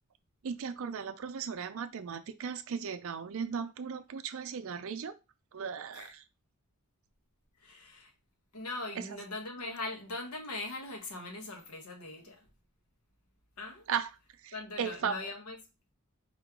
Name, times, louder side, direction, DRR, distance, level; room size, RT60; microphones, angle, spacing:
voice 1, 0.4-5.1 5.5-6.2 9.0-9.1 13.9-14.1 14.4-15.3, right 6 dB, 65° right, 0.4 m, -36 dB
voice 2, 7.6-8.1 8.5-12.5 13.6-13.8 14.5-15.6, left 2 dB, 85° left, 1.4 m, -41 dB
4.3 x 3.1 x 3.7 m
head